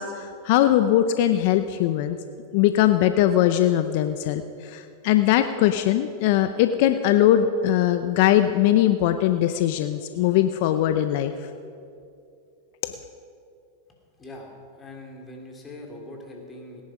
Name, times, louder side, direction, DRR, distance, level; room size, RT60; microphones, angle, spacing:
voice 1, 0.0-2.2 2.5-11.3 12.8-12.9, left 12 dB, 60° left, 9 dB, 0.6 m, -21 dB
voice 2, 14.2-16.8, left 1 dB, 25° left, 1 dB, 3.0 m, -42 dB
18.0 x 10.5 x 5.0 m, 2.5 s
hypercardioid pair, 105°, 0 cm